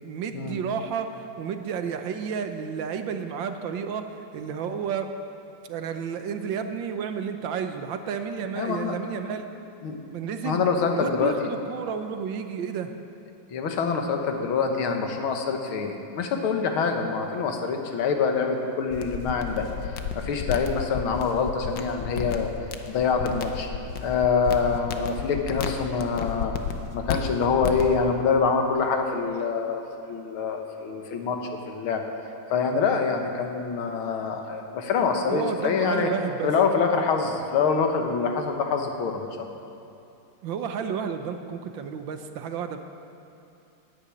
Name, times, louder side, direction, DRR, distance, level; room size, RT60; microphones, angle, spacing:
voice 1, 0.0-5.1 5.6-9.4 10.1-10.6 10.9-12.9 35.3-36.5 40.4-42.8, right 7 dB, 70° right, 7 dB, 1.5 m, -31 dB
voice 2, 8.6-9.0 9.8-10.0 10.4-11.5 13.5-22.5 22.9-23.7 24.0-26.6 26.9-32.0 32.5-36.1 36.4-39.3, left 5 dB, 85° left, 4 dB, 2.1 m, -25 dB
sound 1, 18.9-28.0, left 7 dB, 70° left, 1.6 m, -33 dB
11.0 x 10.5 x 8.5 m, 2.8 s
omnidirectional pair, 2.2 m